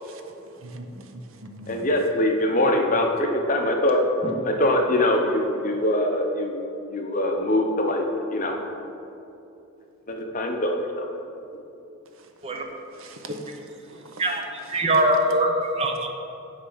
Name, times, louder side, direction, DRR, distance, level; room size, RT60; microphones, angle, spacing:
voice 1, 0.6-1.9 12.9-13.6 13.9-14.2 14.7-14.8, right 1 dB, 70° right, 5 dB, 0.7 m, -42 dB
voice 2, 1.7-4.0 4.4-6.6 6.9-8.6 10.1-11.1, left 1 dB, 40° left, 2 dB, 0.7 m, -23 dB
voice 3, 14.7-15.5 15.7-16.1, right 1 dB, 25° right, 3 dB, 0.6 m, -22 dB
9.9 x 3.4 x 5.5 m, 2.8 s
head